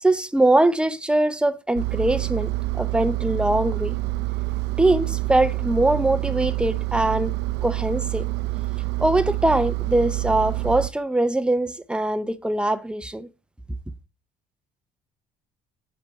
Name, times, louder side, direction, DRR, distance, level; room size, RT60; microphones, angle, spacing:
voice 1, 0.0-2.5 2.8-4.0 4.8-7.3 7.6-8.3 9.0-13.3, right 1 dB, 5° right, 0.5 m, -22 dB
Engine, 1.7-10.9, right 20 dB, 85° right, 0.5 m, -27 dB
6.0 x 5.3 x 4.6 m
cardioid pair, 110°, 17 cm